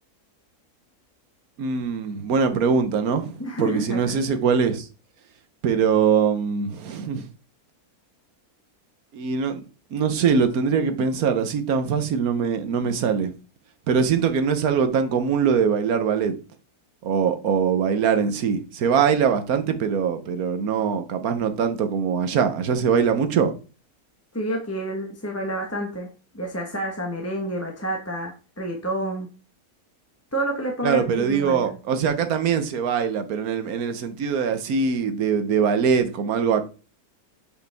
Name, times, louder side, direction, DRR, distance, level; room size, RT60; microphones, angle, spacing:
voice 1, 1.6-4.9 5.6-7.3 9.1-9.6 9.9-13.3 13.9-16.4 17.0-23.5 30.8-36.6, right 6 dB, 70° right, 1.3 m, -22 dB
voice 2, 3.4-4.2 24.3-26.1 26.3-29.3 30.3-31.8, right 1 dB, 10° left, 1.1 m, -29 dB
8.2 x 5.2 x 3.4 m
omnidirectional pair, 1.6 m